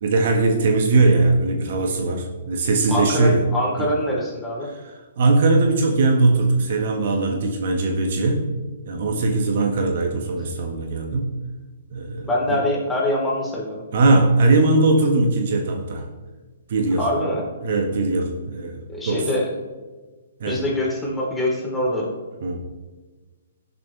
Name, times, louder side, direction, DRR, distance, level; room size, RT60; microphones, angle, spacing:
voice 1, 0.0-3.4 3.8-3.9 4.7-8.4 8.9-11.3 11.9-12.6 13.9-16.0 16.7-17.0 17.6-19.3 20.4-20.6 22.4-22.6, right 3 dB, 55° right, 4 dB, 1.7 m, -20 dB
voice 2, 2.9-4.7 12.3-13.8 17.0-17.4 18.9-19.5 20.5-22.1, left 1 dB, 10° left, -4 dB, 4.0 m, -24 dB
17.5 x 7.3 x 3.5 m, 1.3 s
figure-of-eight pair, 125°, 0 cm